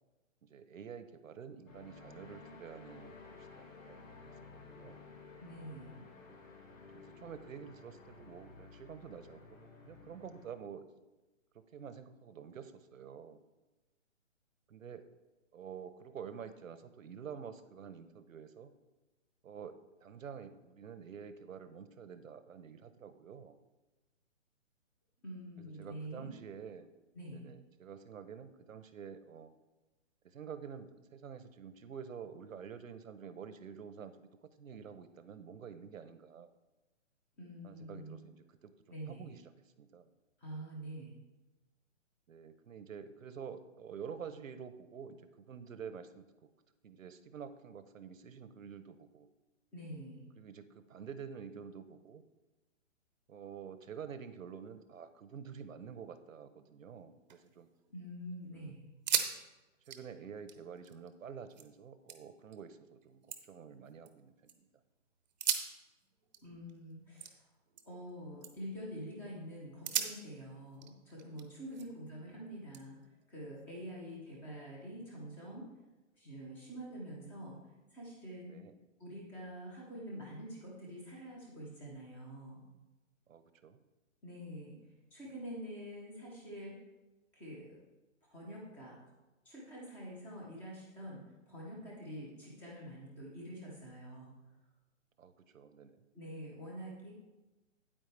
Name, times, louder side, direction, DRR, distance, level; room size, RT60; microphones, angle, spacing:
voice 1, 0.4-5.0 6.9-10.9 11.7-13.4 14.7-15.0 15.5-18.7 19.4-23.6 25.6-26.9 27.3-29.5 30.2-34.3 34.6-36.5 37.6-38.7 39.1-39.4 39.8-40.1 42.3-46.3 46.8-49.3 50.4-52.2 53.3-57.7 58.5-58.8 59.9-63.2 63.5-64.7 71.7-71.8 78.5-78.7 83.3-83.8 95.2-96.0, right 7 dB, 80° right, 11 dB, 0.9 m, -48 dB
sound 1, 1.7-10.5, left 4 dB, 85° left, 2.1 m, -54 dB
voice 2, 5.4-6.0 25.2-26.4 27.1-27.5 37.4-38.2 38.9-39.3 40.4-41.2 49.7-50.3 57.9-58.9 66.4-67.4 67.8-73.0 73.3-75.7 76.2-77.6 77.9-78.5 79.0-82.6 84.2-84.8 85.1-86.8 87.3-87.8 88.3-89.0 89.4-94.3 96.1-97.1, equal, 5° left, -3 dB, 0.6 m, -46 dB
sound 2, 57.0-58.1 58.4-58.5 58.9-59.4 59.6-61.7 62.1-62.6 63.0-64.5 65.3-68.1 68.4-68.8 69.3-69.4 69.8-72.1 72.7-73.9, right 8 dB, 35° right, 0.7 m, -40 dB
8.9 x 8.7 x 3.4 m, 1.1 s
hypercardioid pair, 155°, 39 cm